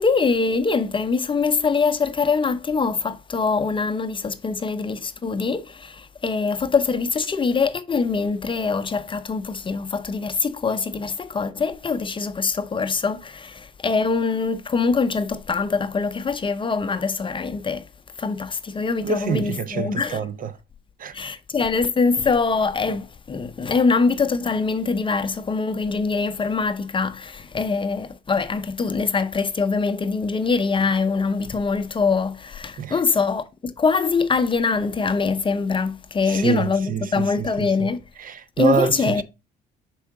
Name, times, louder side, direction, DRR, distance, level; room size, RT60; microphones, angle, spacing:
voice 1, 0.0-17.8 18.2-20.2 21.1-38.0 38.6-39.2, left 4 dB, 25° left, 0.6 m, -23 dB
voice 2, 19.0-20.5 21.0-21.1 32.8-33.0 36.3-37.9 38.2-39.2, right 6 dB, 45° right, 0.5 m, -26 dB
5.6 x 4.6 x 3.7 m
supercardioid pair, 70°, 20 cm